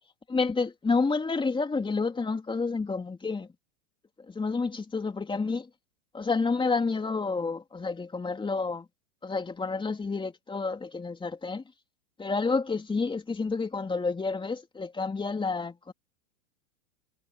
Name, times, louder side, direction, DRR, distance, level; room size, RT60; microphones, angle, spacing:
voice 1, 0.3-3.5 4.3-5.7 6.1-8.9 9.2-11.6 12.2-15.9, left 4 dB, 10° left, 2.9 m, -29 dB
hypercardioid pair, 115°, 40 cm